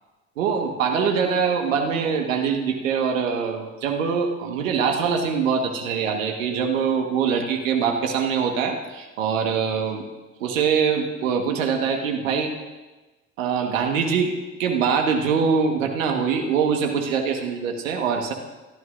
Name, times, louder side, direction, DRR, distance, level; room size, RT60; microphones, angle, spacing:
voice 1, 0.4-10.0 10.4-12.5 13.4-14.3 14.6-18.3, right 6 dB, 80° right, 3 dB, 1.6 m, -23 dB
28.0 x 12.5 x 2.6 m, 1.2 s
hypercardioid pair, 70°, 39 cm